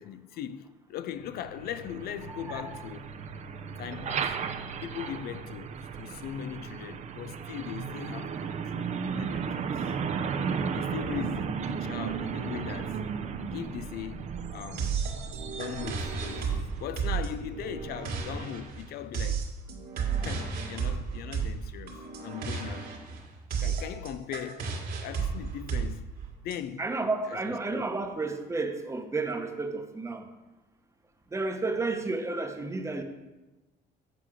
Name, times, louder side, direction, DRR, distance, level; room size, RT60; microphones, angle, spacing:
voice 1, 0.0-3.2 3.8-4.4 4.8-9.9 10.7-13.0 13.5-15.0 15.5-19.5 20.2-23.0 23.6-26.9 27.2-27.9, left 10 dB, 65° left, 0.4 m, -40 dB
Truck, 1.2-18.9, right 6 dB, 45° right, 0.6 m, -35 dB
voice 2, 2.3-2.8 11.1-11.4 26.8-30.3 31.3-33.0, right 3 dB, 15° right, 0.9 m, -32 dB
sound 1, 14.8-26.6, right 6 dB, 60° right, 1.8 m, -33 dB
7.8 x 4.8 x 6.2 m
cardioid pair, 110°, 17 cm